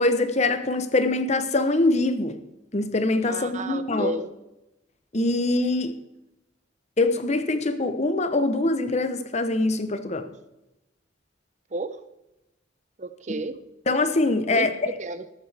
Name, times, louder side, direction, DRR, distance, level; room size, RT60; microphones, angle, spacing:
voice 1, 0.0-2.4 2.7-4.2 5.1-5.9 7.0-10.3 13.9-14.7, left 2 dB, 35° left, 0.8 m, -23 dB
voice 2, 3.3-4.3 11.7-12.0 13.0-13.6 14.5-15.3, right 2 dB, 40° right, 0.6 m, -32 dB
14.0 x 12.5 x 3.4 m
head